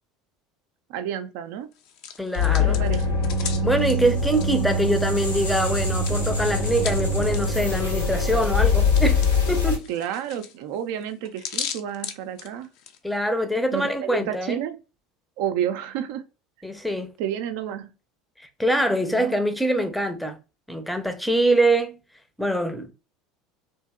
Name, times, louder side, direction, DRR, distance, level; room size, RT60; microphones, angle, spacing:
voice 1, 0.9-1.7 2.6-3.2 9.9-12.7 13.7-14.8 15.4-16.3 17.2-17.9 19.1-19.4, right 9 dB, 60° right, 0.4 m, -30 dB
Hands, 1.7-5.4 5.7-13.0, left 8 dB, 55° left, 0.4 m, -38 dB
voice 2, 2.2-2.8 3.6-9.9 13.0-14.6 16.6-17.1 18.6-20.4 20.7-22.0 22.4-22.9, right 1 dB, 5° left, 0.6 m, -24 dB
sound 1, 2.4-9.8, left 3 dB, 85° left, 1.0 m, -23 dB
2.8 x 2.7 x 2.2 m
figure-of-eight pair, 70°, 0 cm